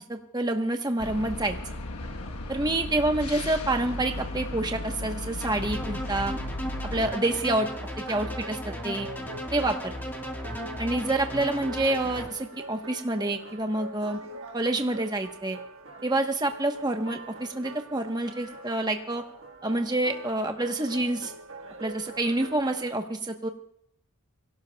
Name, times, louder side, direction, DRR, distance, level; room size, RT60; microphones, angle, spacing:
voice 1, 0.1-1.6 2.5-6.3 6.8-7.7 8.1-9.1 9.5-9.9 10.8-14.2 14.5-15.6 16.0-19.2 19.6-21.3 21.8-23.5, right 2 dB, 20° right, 5 dB, 1.1 m, -27 dB
sound 1, 1.0-7.1, left 1 dB, 85° left, 1.2 m, -35 dB
sound 2, 5.4-12.3, equal, 10° left, 1.5 m, -36 dB
sound 3, 6.8-23.0, right 2 dB, 60° right, 1.5 m, -43 dB
24.0 x 17.0 x 2.3 m, 0.70 s
head